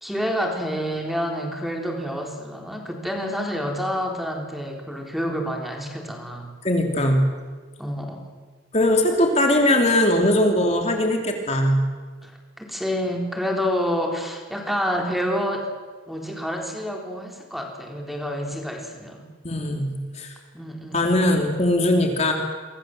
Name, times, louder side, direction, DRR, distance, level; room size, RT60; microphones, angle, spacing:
voice 1, 0.0-6.5 7.8-8.3 12.2-15.7 16.1-19.3 20.5-21.2, equal, ahead, 1 dB, 3.7 m, -28 dB
voice 2, 6.6-7.3 8.7-11.8 19.4-20.3 20.9-22.3, left 1 dB, 35° left, 3 dB, 3.1 m, -20 dB
28.5 x 24.5 x 7.8 m, 1.4 s
head